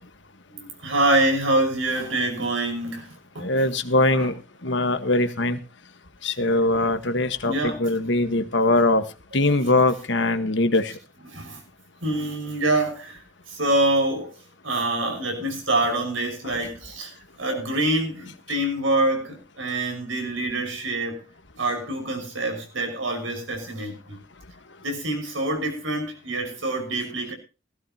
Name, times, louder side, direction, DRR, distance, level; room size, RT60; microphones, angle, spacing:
voice 1, 0.5-3.5 4.1-4.3 7.4-7.8 11.3-11.6 12.0-14.3 14.6-21.2 21.6-24.2 24.8-27.3, right 2 dB, 85° right, 5.9 m, -26 dB
voice 2, 3.4-5.6 6.2-9.0 9.3-10.9, left 2 dB, 65° left, 1.5 m, -22 dB
18.0 x 14.5 x 3.0 m
head